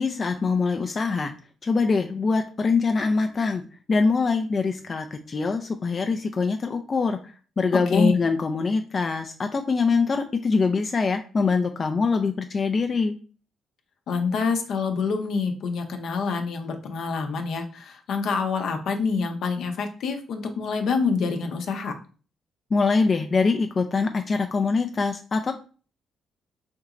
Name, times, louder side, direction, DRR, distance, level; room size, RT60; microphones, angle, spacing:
voice 1, 0.0-1.3 1.6-3.6 3.9-13.2 22.7-25.5, left 4 dB, 40° left, 5 dB, 0.4 m, -24 dB
voice 2, 14.1-21.9, left 5 dB, 70° left, 5 dB, 0.7 m, -26 dB
4.3 x 2.9 x 2.4 m, 0.38 s
cardioid pair, 90°, 0 cm